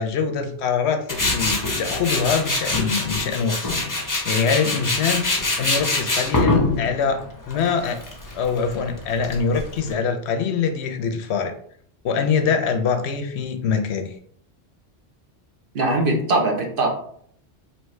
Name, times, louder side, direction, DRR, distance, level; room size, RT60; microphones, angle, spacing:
voice 1, 0.0-7.2 7.5-8.0 8.3-11.5 12.0-14.1, left 6 dB, 70° left, 7 dB, 0.8 m, -24 dB
Tools, 1.1-9.9, left 2 dB, 20° left, 0.6 m, -25 dB
voice 2, 15.7-16.9, right 2 dB, 55° right, 0 dB, 1.0 m, -21 dB
4.5 x 2.9 x 3.1 m, 0.63 s
omnidirectional pair, 1.2 m